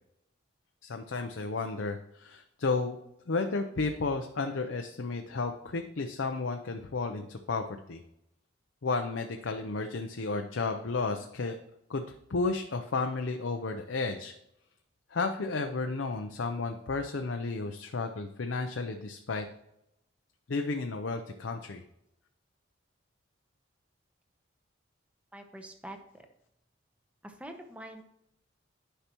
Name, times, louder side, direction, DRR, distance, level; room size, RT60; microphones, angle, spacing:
voice 1, 0.8-3.0 3.3-8.0 8.8-11.6 11.9-12.0 12.3-14.3 15.1-19.4 20.5-21.8, left 3 dB, 70° left, 5 dB, 0.6 m, -32 dB
voice 2, 25.3-26.0 27.2-28.0, right 1 dB, 5° right, 5 dB, 0.8 m, -44 dB
10.0 x 5.7 x 3.0 m, 0.82 s
head